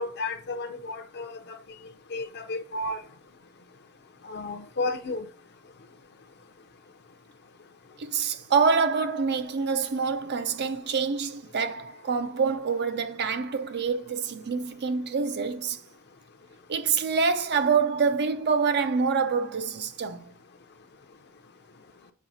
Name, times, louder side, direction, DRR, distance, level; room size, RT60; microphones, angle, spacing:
voice 1, 0.0-1.6 2.1-3.0 4.2-5.3, left 2 dB, 50° left, 0.7 m, -32 dB
voice 2, 8.0-15.8 16.7-20.3, right 5 dB, 50° right, 0.6 m, -26 dB
7.4 x 4.8 x 2.7 m
head